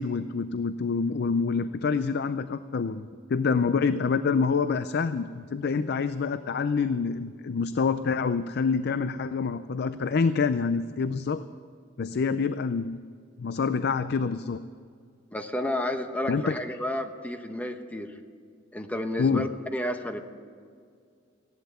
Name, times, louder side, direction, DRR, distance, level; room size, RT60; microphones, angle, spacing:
voice 1, 0.0-11.4 12.0-13.0 13.4-14.6 16.3-16.5 19.2-19.5, left 5 dB, 55° left, 12 dB, 0.4 m, -27 dB
voice 2, 15.3-18.1 18.7-20.2, left 1 dB, 10° left, 6 dB, 1.0 m, -31 dB
15.5 x 11.5 x 6.8 m, 2.2 s
head